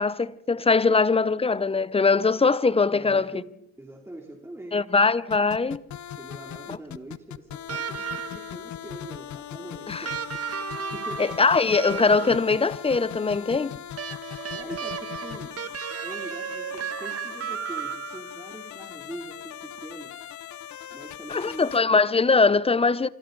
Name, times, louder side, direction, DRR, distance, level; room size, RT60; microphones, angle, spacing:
voice 1, 0.0-3.3 4.7-5.8 9.9-10.1 11.2-13.7 21.3-23.1, left 4 dB, 20° left, 0.8 m, -21 dB
voice 2, 2.9-3.5 3.8-4.8 6.1-11.4 14.5-15.6 16.0-20.2 20.5-20.6 20.9-21.7, right 1 dB, 10° right, 2.9 m, -42 dB
sound 1, 5.3-21.8, left 11 dB, 60° left, 0.9 m, -40 dB
sound 2, 7.7-8.6 10.0-12.6 14.0-18.4 19.8-19.9, right 8 dB, 45° right, 1.6 m, -34 dB
26.5 x 26.0 x 4.0 m
cardioid pair, 95°, 32 cm